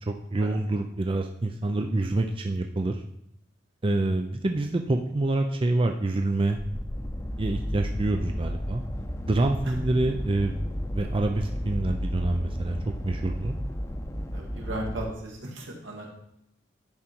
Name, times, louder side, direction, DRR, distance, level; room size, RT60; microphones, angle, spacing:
voice 1, 0.0-3.0 3.8-6.6 7.4-8.8 9.3-10.5 10.9-13.6, right 2 dB, 30° right, 4 dB, 0.5 m, -26 dB
sound 1, 6.5-15.0, equal, 15° left, 0.8 m, -33 dB
voice 2, 14.3-16.1, right 1 dB, 80° right, 0 dB, 2.0 m, -36 dB
10.5 x 5.1 x 4.5 m, 0.76 s
head